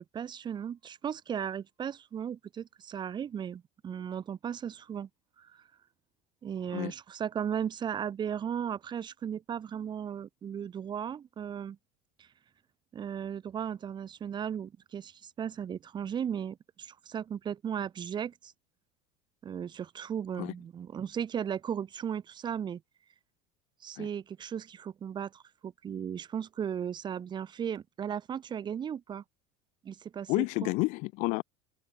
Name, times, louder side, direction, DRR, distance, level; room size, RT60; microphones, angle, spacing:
voice 1, 0.0-5.1 5.4-5.6 6.4-11.8 12.2-12.3 12.9-18.5 19.4-22.8 23.8-29.2 29.8-30.7, right 8 dB, 35° right, 3.9 m, -36 dB
voice 2, 30.3-31.4, left 26 dB, 65° left, 1.1 m, -30 dB
open air
supercardioid pair, 105°, 13 cm